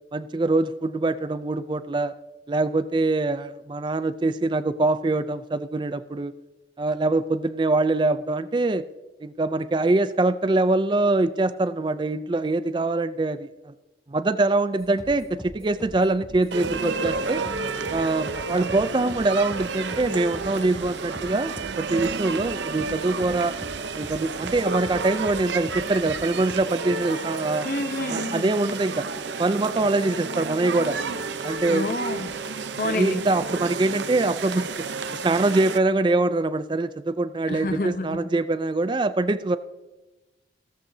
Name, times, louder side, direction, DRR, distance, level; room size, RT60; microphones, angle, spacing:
voice 1, 0.1-2.1 2.5-6.3 6.8-8.8 9.2-13.7 14.1-17.4 17.9-23.6 23.9-27.7 28.1-29.1 29.4-31.0 31.4-32.0 32.8-34.7 35.2-39.6, right 2 dB, 25° right, 13 dB, 0.4 m, -24 dB
sound 1, 14.8-34.3, equal, 5° left, 2.2 m, -44 dB
sound 2, 16.5-35.8, right 4 dB, 85° right, 0.8 m, -31 dB
voice 2, 27.6-28.5 31.7-32.3 32.8-33.2 37.5-38.2, left 2 dB, 50° left, 10 dB, 0.8 m, -29 dB
16.0 x 14.0 x 2.7 m, 1.1 s
head